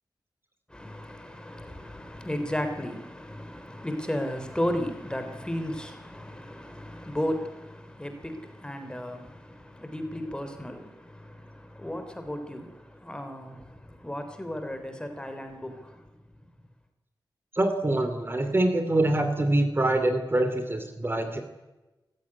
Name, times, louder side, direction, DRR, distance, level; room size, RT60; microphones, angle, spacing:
voice 1, 0.7-16.5, equal, 10° left, 3.4 m, -35 dB
voice 2, 17.5-21.4, right 1 dB, 30° right, 2.7 m, -25 dB
26.0 x 15.0 x 9.9 m
wide cardioid pair, 95°, 8 cm